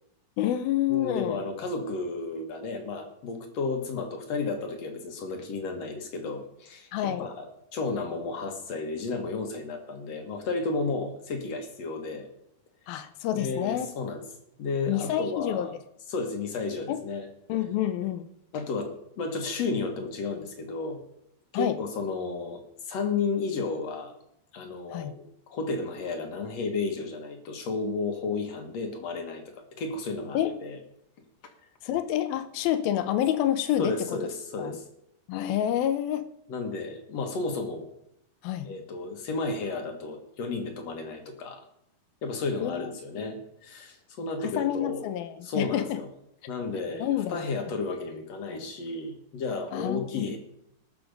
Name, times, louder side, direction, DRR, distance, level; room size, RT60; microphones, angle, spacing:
voice 1, 0.4-1.4 6.9-7.3 12.9-13.9 14.9-15.7 16.9-17.0 17.5-18.3 21.5-21.8 24.9-25.1 30.3-30.6 31.8-34.0 34.6-34.7 35.3-36.3 38.4-38.7 42.6-43.3 44.4-46.0 46.7-47.4 49.7-50.3, left 11 dB, 80° left, 11 dB, 2.7 m, -28 dB
voice 2, 0.9-12.3 13.3-14.2 14.6-15.7 16.1-17.3 18.5-21.0 21.5-22.6 22.9-24.1 24.5-25.2 25.5-29.4 29.8-30.8 33.8-34.8 36.5-37.9 38.6-41.6 42.2-45.1 45.4-46.1 46.5-50.4, left 4 dB, 55° left, 4 dB, 2.1 m, -32 dB
20.0 x 6.8 x 5.2 m, 0.76 s
omnidirectional pair, 4.3 m